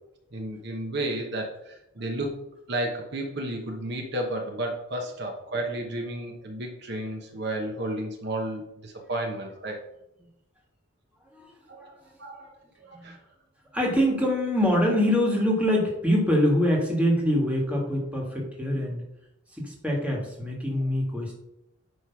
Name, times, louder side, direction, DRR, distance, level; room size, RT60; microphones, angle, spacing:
voice 1, 0.3-2.3 2.7-9.8 11.7-12.5 12.8-13.2, right 1 dB, 50° right, 1 dB, 1.0 m, -32 dB
voice 2, 13.7-19.0 19.5-21.3, equal, 5° right, -2 dB, 1.7 m, -24 dB
9.5 x 3.2 x 5.8 m, 0.85 s
head